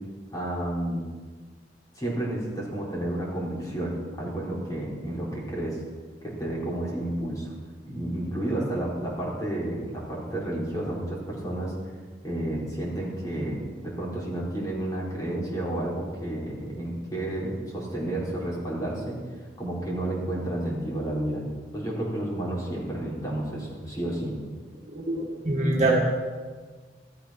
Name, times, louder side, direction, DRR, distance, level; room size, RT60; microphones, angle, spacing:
voice 1, 0.3-1.0 2.0-5.8 6.2-7.5 7.9-11.7 12.2-19.2 19.6-21.4 21.7-24.3, right 1 dB, 20° left, -5 dB, 4.5 m, -31 dB
voice 2, 24.9-25.9, right 2 dB, 40° right, -2 dB, 2.2 m, -25 dB
15.0 x 13.0 x 6.0 m, 1.4 s
head